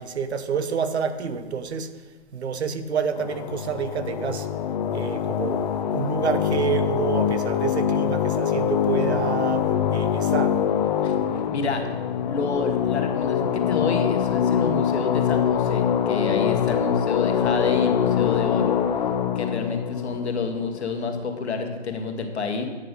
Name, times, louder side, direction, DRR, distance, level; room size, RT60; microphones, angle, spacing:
voice 1, 0.0-1.9 2.3-4.5 4.9-10.6, right 6 dB, 70° right, 10 dB, 0.9 m, -28 dB
sound 1, 3.1-21.3, left 8 dB, 40° left, 0.6 m, -24 dB
voice 2, 11.5-11.9 12.3-18.8 19.3-22.7, left 4 dB, 70° left, 5 dB, 1.5 m, -28 dB
8.9 x 5.8 x 5.3 m, 1.3 s
hypercardioid pair, 140°, 34 cm